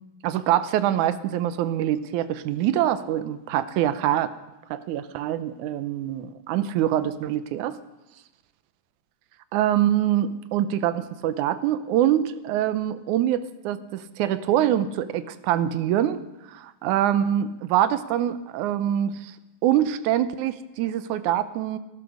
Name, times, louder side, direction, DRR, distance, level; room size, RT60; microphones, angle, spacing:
voice 1, 0.2-4.4 4.7-7.8 9.5-16.2 16.5-19.4 19.6-21.8, right 11 dB, 80° right, 13 dB, 2.2 m, -24 dB
18.0 x 12.0 x 6.5 m, 1.0 s
omnidirectional pair, 3.5 m